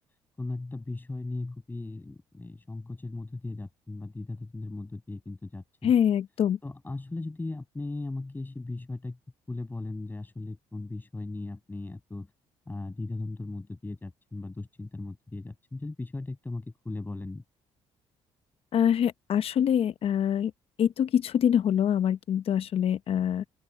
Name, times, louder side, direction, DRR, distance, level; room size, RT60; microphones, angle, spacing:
voice 1, 0.4-5.9 6.6-9.2 9.5-12.3 12.7-17.4, left 2 dB, 15° left, 6.5 m, -37 dB
voice 2, 5.8-6.6 18.7-20.5 20.8-23.4, left 9 dB, 55° left, 0.9 m, -25 dB
open air
cardioid pair, 100°, 12 cm